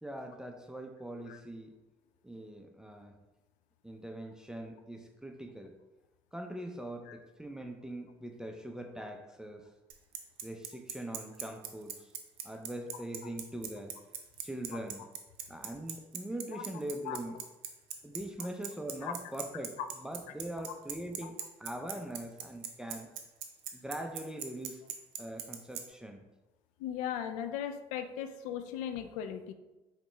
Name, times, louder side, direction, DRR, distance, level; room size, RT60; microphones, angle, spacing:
voice 1, 0.0-1.7 2.2-3.1 3.8-5.8 6.3-9.7 10.4-12.1 12.4-13.9 14.4-15.1 15.5-17.4 18.0-21.3 21.6-23.1 23.7-24.8 25.2-26.2, right 1 dB, 5° right, 3 dB, 0.6 m, -42 dB
Bicycle, 9.9-25.8, right 10 dB, 85° right, 0.5 m, -39 dB
voice 2, 26.8-29.5, left 9 dB, 75° left, 9 dB, 0.4 m, -37 dB
4.9 x 3.2 x 3.3 m, 1.1 s
hypercardioid pair, 60°, 13 cm